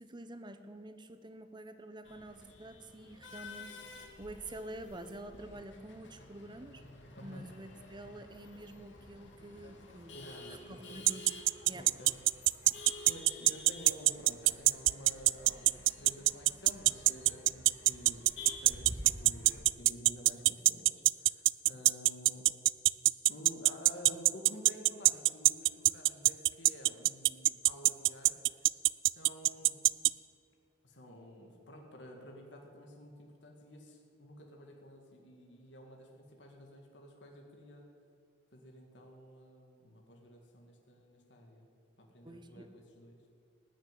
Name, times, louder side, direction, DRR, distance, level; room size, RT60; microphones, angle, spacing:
voice 1, 0.0-6.8 7.2-10.2 10.5-11.3 11.7-11.9 42.2-42.7, right 1 dB, 25° right, 9 dB, 0.9 m, -48 dB
Male speech man speaking / Laughter / Chatter, 2.0-19.6, left 2 dB, 90° left, 2.2 m, -50 dB
voice 2, 7.2-7.5 10.1-11.0 11.8-12.2 13.0-18.2 18.5-22.5 23.3-28.4 29.2-29.8 30.8-37.9 38.5-41.7 42.0-43.2, equal, 70° left, 1 dB, 2.1 m, -51 dB
sound 1, 11.1-30.1, right 19 dB, 80° right, 0.3 m, -23 dB
19.0 x 6.6 x 9.2 m, 2.3 s
head